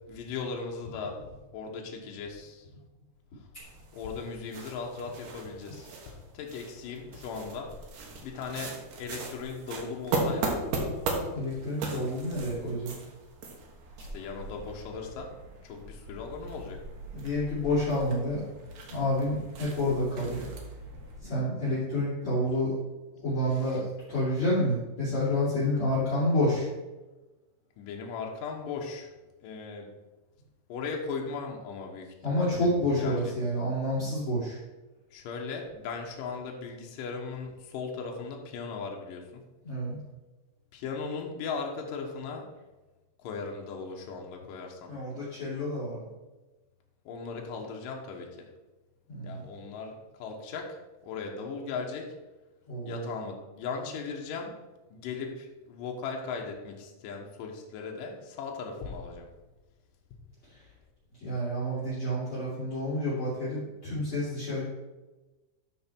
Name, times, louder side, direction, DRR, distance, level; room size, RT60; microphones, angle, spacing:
voice 1, 0.1-2.7 3.9-7.8 8.2-10.7 14.1-15.3 15.6-16.8 27.8-29.1 29.4-29.9 30.7-32.7 33.0-33.3 35.1-39.4 40.7-42.5 43.2-44.9 47.1-48.5 49.2-50.8 51.0-52.1 52.8-54.5 54.9-59.3, left 5 dB, 65° left, 1 dB, 2.5 m, -38 dB
sound 1, 3.6-21.2, right 2 dB, 65° right, 2.6 m, -38 dB
voice 2, 11.3-12.9 17.1-18.4 18.9-20.5 21.2-22.8 23.2-26.7 32.2-34.6 39.6-40.0 44.9-46.1 49.1-49.5 52.7-53.1 60.5-60.7 61.1-64.6, left 1 dB, 35° left, -9 dB, 3.2 m, -29 dB
12.5 x 4.8 x 4.5 m, 1.1 s
omnidirectional pair, 4.7 m